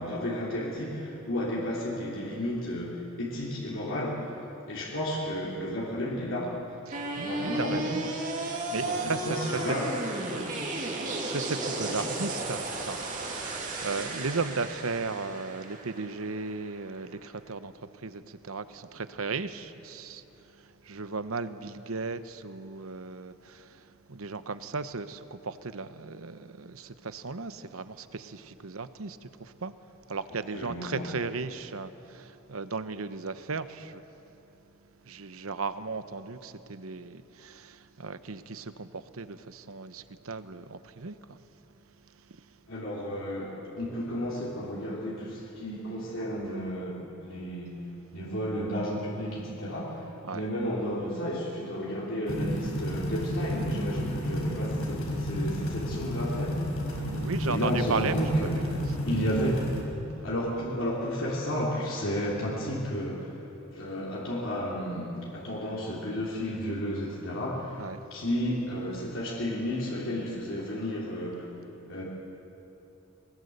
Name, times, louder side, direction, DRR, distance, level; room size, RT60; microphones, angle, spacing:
voice 1, 0.0-4.4 4.7-6.6 7.2-7.9 8.8-9.9 11.9-12.2 30.5-31.1 42.7-47.8 48.1-56.6 57.4-58.8 59.0-59.7 60.2-63.4 63.7-67.9 68.1-71.4 71.9-72.0, equal, 65° left, 3.5 m, -32 dB
sound 1, 6.9-17.0, right 2 dB, 35° right, 2.9 m, -34 dB
voice 2, 6.9-9.8 10.3-10.5 10.8-20.2 20.5-29.7 30.1-34.0 35.1-41.4 42.3-42.5 50.2-50.4 57.0-58.5 60.1-60.2 67.8-68.0, right 4 dB, 80° right, 0.9 m, -36 dB
sound 2, 52.3-59.8, equal, 90° left, 5.2 m, -31 dB
22.5 x 20.0 x 8.0 m
head